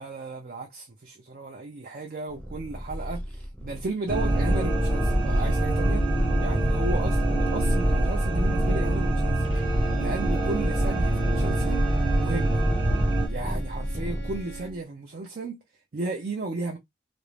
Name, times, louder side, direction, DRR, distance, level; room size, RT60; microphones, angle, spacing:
voice 1, 0.0-6.1 6.4-11.9 12.2-12.6 13.3-15.6 15.9-16.8, right 2 dB, 55° right, 0.5 m, -34 dB
Purr, 2.3-8.8 9.5-14.7, equal, 5° left, 0.6 m, -34 dB
sound 1, 4.1-13.3, right 1 dB, 30° right, 0.8 m, -24 dB
Bowed string instrument, 9.4-14.9, right 6 dB, 90° left, 0.9 m, -45 dB
2.5 x 2.0 x 3.0 m
head